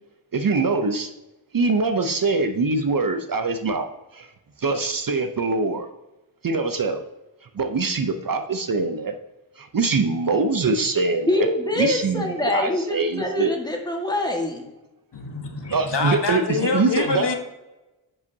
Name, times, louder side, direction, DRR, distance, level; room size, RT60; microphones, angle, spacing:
voice 1, 0.3-1.1 1.5-3.9 4.1-4.3 4.6-5.9 6.4-7.0 7.5-9.1 9.6-11.5 11.8-13.5 15.7-17.3, right 3 dB, 45° right, 8 dB, 0.7 m, -23 dB
voice 2, 11.3-14.6, left 2 dB, 10° left, 1 dB, 1.5 m, -24 dB
voice 3, 15.1-17.4, left 4 dB, 55° left, 3 dB, 1.3 m, -25 dB
10.5 x 5.3 x 2.7 m, 1.0 s
cardioid pair, 55°, 48 cm